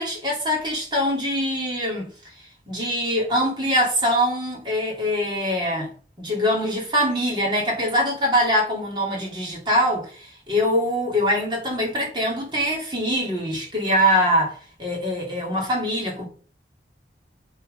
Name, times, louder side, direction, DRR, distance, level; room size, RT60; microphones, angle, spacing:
voice 1, 0.0-2.1 2.7-5.9 6.2-16.3, equal, 25° right, 2.7 m, -23 dB
8.0 x 6.2 x 5.1 m
head